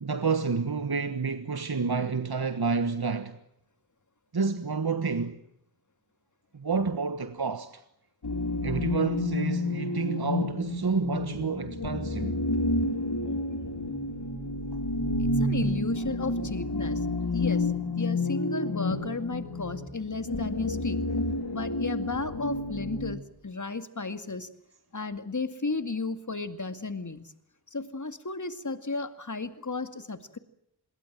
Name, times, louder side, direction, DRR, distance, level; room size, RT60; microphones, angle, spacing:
voice 1, 0.0-3.4 4.3-5.4 6.5-7.8 8.6-12.4, right 4 dB, 70° right, 1.5 m, -29 dB
sound 1, 8.2-23.2, left 2 dB, 80° left, 3.2 m, -30 dB
voice 2, 15.2-17.0 17.3-21.0 21.5-24.5 24.9-27.3 27.7-30.4, left 3 dB, 50° left, 2.3 m, -34 dB
25.5 x 22.5 x 7.5 m
wide cardioid pair, 50°, 39 cm